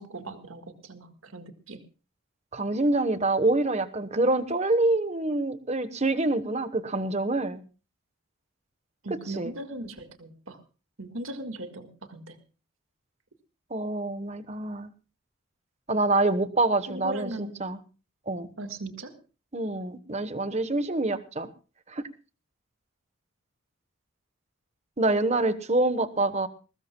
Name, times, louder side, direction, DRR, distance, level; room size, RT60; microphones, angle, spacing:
voice 1, 0.0-1.8 9.0-10.6 11.0-12.4 16.9-17.7 18.6-19.2, right 1 dB, 70° right, 7 dB, 1.8 m, -39 dB
voice 2, 2.5-7.6 9.4-9.5 13.7-14.9 15.9-17.8 18.3-18.5 19.5-21.5 21.9-22.0 25.0-26.5, right 2 dB, 30° right, 11 dB, 1.1 m, -26 dB
21.5 x 19.5 x 2.3 m, 0.33 s
head